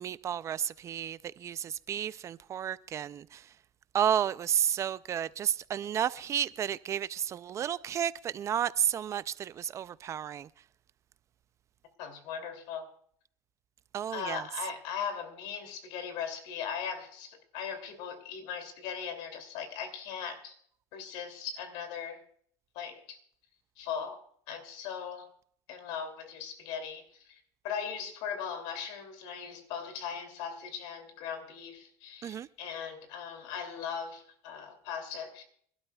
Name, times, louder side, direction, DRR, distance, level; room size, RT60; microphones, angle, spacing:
voice 1, 0.0-3.4 3.9-10.5 13.9-14.4 32.2-32.5, right 9 dB, 35° right, 0.4 m, -32 dB
voice 2, 12.0-12.9 14.1-20.5 20.9-22.2 22.7-23.2 23.8-25.3 25.7-35.4, left 7 dB, 75° left, 2.7 m, -39 dB
25.5 x 12.0 x 2.3 m
cardioid pair, 120°, 8 cm